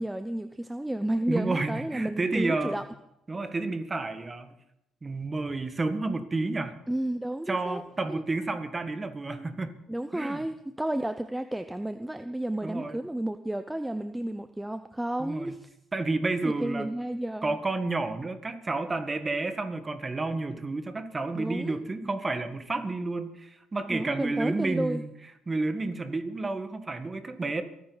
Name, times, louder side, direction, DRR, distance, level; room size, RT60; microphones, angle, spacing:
voice 1, 0.0-2.8 6.9-7.8 8.1-8.2 9.3-9.5 9.9-15.7 16.4-17.6 21.3-21.7 22.0-22.1 23.9-25.0, right 1 dB, 5° right, 9 dB, 0.7 m, -32 dB
voice 2, 1.3-2.8 3.3-4.5 5.0-6.8 7.5-9.7 10.1-10.5 12.6-13.0 15.2-15.6 15.9-16.9 17.4-25.1 25.5-27.6, right 3 dB, 25° right, 9 dB, 1.6 m, -30 dB
24.0 x 9.8 x 4.1 m, 0.81 s
cardioid pair, 85°, 0 cm